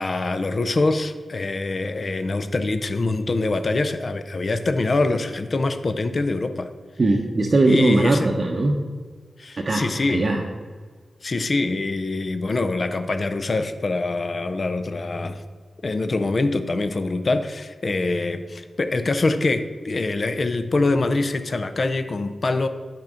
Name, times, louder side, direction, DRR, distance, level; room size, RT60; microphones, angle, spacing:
voice 1, 0.0-6.7 7.7-8.3 9.4-10.3 11.2-15.4 15.8-22.7, left 2 dB, 50° left, 9 dB, 0.4 m, -24 dB
voice 2, 7.0-8.8 9.6-10.4, right 2 dB, 50° right, 1 dB, 0.6 m, -20 dB
6.0 x 4.4 x 5.0 m, 1.5 s
cardioid pair, 75°, 0 cm